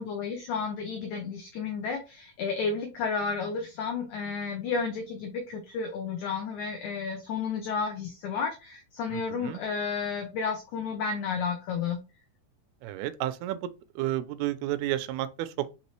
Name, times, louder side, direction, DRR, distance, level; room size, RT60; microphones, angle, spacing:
voice 1, 0.0-12.0, left 5 dB, 90° left, 1.7 m, -32 dB
voice 2, 9.1-9.6 12.8-13.6 14.0-15.7, right 14 dB, 85° right, 2.4 m, -31 dB
6.1 x 2.8 x 3.0 m
omnidirectional pair, 4.3 m